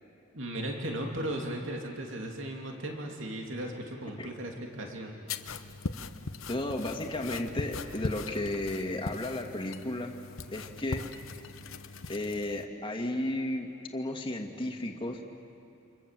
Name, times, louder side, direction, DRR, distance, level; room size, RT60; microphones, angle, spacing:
voice 1, 0.3-5.2, right 1 dB, 65° right, 1 dB, 2.9 m, -36 dB
sound 1, 5.3-12.7, left 3 dB, 80° left, 1.0 m, -40 dB
voice 2, 6.5-10.2 10.5-11.0 12.1-15.2, left 1 dB, 25° left, 2 dB, 2.1 m, -33 dB
28.5 x 27.0 x 7.6 m, 2.6 s
head